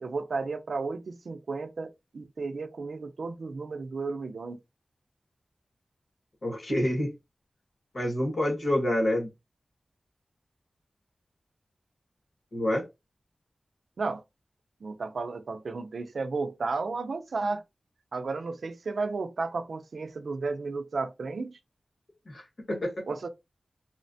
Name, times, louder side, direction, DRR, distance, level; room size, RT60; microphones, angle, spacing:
voice 1, 0.0-4.6 14.0-14.2 14.8-17.6 18.1-21.6 23.1-23.3, right 4 dB, 80° right, 0.4 m, -33 dB
voice 2, 6.4-7.1 7.9-9.3 12.5-12.8 22.3-23.0, left 1 dB, 70° left, 1.3 m, -27 dB
3.0 x 2.1 x 2.6 m
cardioid pair, 45°, 0 cm